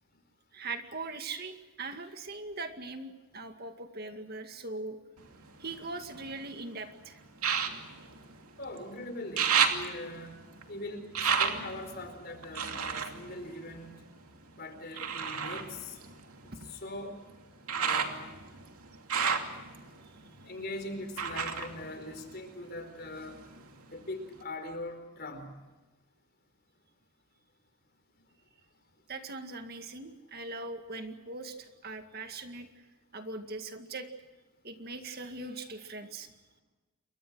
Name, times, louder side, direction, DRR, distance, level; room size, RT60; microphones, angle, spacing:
voice 1, 0.5-5.0 5.6-7.2 16.5-16.8 29.1-32.7 33.1-34.1 34.6-36.3, right 3 dB, 45° right, 6 dB, 2.0 m, -41 dB
sound 1, 5.2-6.5 7.4-8.9 9.1-14.3 14.9-22.8 23.1-23.9 24.4-24.5, right 6 dB, 85° right, 2.7 m, -33 dB
voice 2, 8.6-10.4 10.7-11.1 11.4-14.0 14.6-16.0 16.4-17.2 17.7-18.3 20.4-23.4 23.9-25.6, left 2 dB, 45° left, 7 dB, 4.6 m, -41 dB
29.0 x 23.5 x 6.3 m, 1.2 s
head